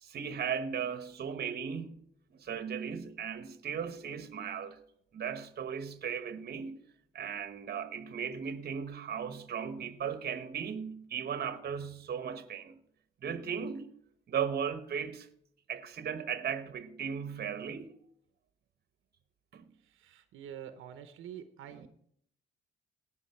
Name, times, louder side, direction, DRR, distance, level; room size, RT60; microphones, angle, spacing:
voice 1, 0.0-2.0 2.4-4.8 5.1-6.8 7.1-12.8 13.2-13.9 14.3-15.3 15.7-18.0 19.5-19.6 21.8-21.9, right 7 dB, 55° right, 1.1 m, -37 dB
voice 2, 19.8-21.9, right 9 dB, 85° right, 0.9 m, -47 dB
17.5 x 6.2 x 4.5 m
cardioid pair, 90°, 20 cm